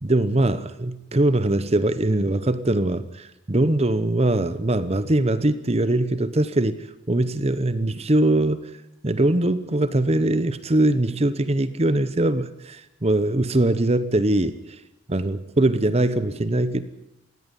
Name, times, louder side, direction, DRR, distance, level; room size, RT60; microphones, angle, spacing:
voice 1, 0.0-6.8 7.1-8.7 9.0-14.6 15.1-16.8, right 1 dB, 30° right, 13 dB, 0.9 m, -22 dB
19.0 x 16.0 x 9.9 m, 0.87 s
head